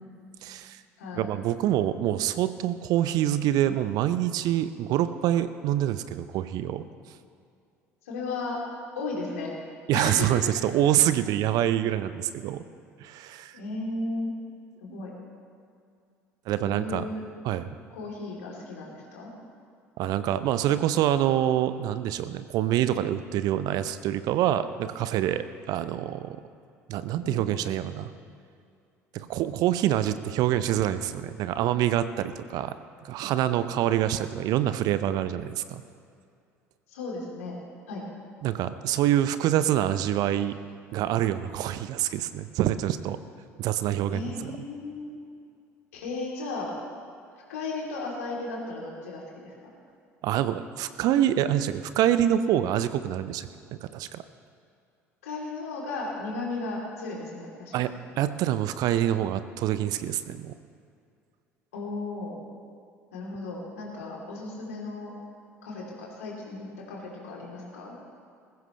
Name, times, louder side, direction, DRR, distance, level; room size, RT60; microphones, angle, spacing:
voice 1, 0.4-0.8 1.1-6.8 9.9-12.6 13.0-13.6 14.9-15.0 16.5-17.1 17.4-17.8 20.0-26.4 26.9-28.1 29.1-32.7 33.0-35.8 38.4-40.6 40.9-43.2 43.6-44.5 50.2-53.5 53.8-54.2 57.7-57.9 58.2-60.6, right 12 dB, 55° right, 13 dB, 0.7 m, -26 dB
voice 2, 1.0-1.3 8.0-8.6 8.9-9.5 9.9-10.4 13.5-14.3 14.8-15.1 16.6-17.2 17.9-19.3 27.2-27.7 36.9-37.6 37.9-38.0 44.1-45.2 45.9-46.7 47.5-49.5 55.2-57.7 61.7-62.4 63.1-65.1 65.6-68.0, left 3 dB, 70° left, -3 dB, 3.4 m, -35 dB
20.5 x 15.5 x 3.3 m, 2.4 s
figure-of-eight pair, 60°, 8 cm